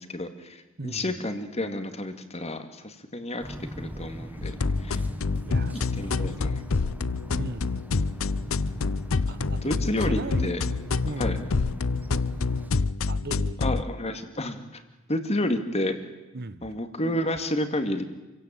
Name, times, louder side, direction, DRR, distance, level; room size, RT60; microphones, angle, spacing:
voice 1, 0.0-4.5 4.8-5.0 6.0-6.6 9.6-10.6 11.2-11.4 13.6-14.8 15.1-16.0 16.6-18.0, left 1 dB, 30° left, 8 dB, 2.3 m, -30 dB
voice 2, 0.8-1.2 5.4-6.3 7.3-7.7 9.3-10.8 11.0-11.5 13.1-13.8 16.3-16.6, right 2 dB, 50° right, 15 dB, 1.1 m, -38 dB
sound 1, 3.4-12.7, equal, 10° right, 1.5 m, -40 dB
sound 2, 4.4-13.8, left 4 dB, 90° left, 0.7 m, -27 dB
28.0 x 16.5 x 9.0 m, 1.1 s
head